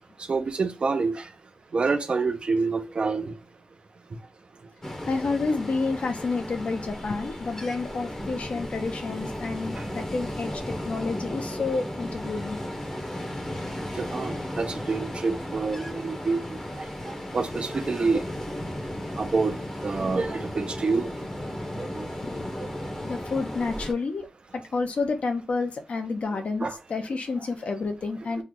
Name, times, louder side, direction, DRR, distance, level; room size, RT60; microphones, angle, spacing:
voice 1, 0.3-1.2 1.7-3.3 14.0-16.6 17.3-18.2 19.2-19.6 19.8-21.1 21.8-22.1 26.6-26.7 28.4-28.5, right 4 dB, 45° right, 0.6 m, -27 dB
Ocean, 4.8-23.9, left 1 dB, 20° left, 0.9 m, -35 dB
voice 2, 5.0-12.6 22.2-22.5 23.0-24.3 24.5-28.4, left 4 dB, 55° left, 0.8 m, -29 dB
3.1 x 2.4 x 3.8 m
wide cardioid pair, 125°, 3 cm